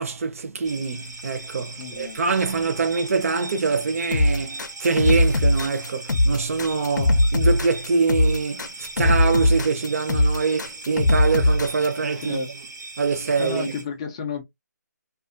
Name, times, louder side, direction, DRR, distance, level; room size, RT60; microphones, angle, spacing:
voice 1, 0.0-12.4 13.0-13.8, right 4 dB, 50° right, 0.6 m, -24 dB
sound 1, 0.6-13.8, right 3 dB, 85° right, 0.8 m, -39 dB
voice 2, 1.8-2.2 12.2-12.5 13.4-14.4, left 4 dB, 20° left, 0.4 m, -31 dB
sound 2, 4.1-11.9, left 1 dB, 80° left, 0.5 m, -20 dB
2.4 x 2.3 x 2.4 m
hypercardioid pair, 160°, 10 cm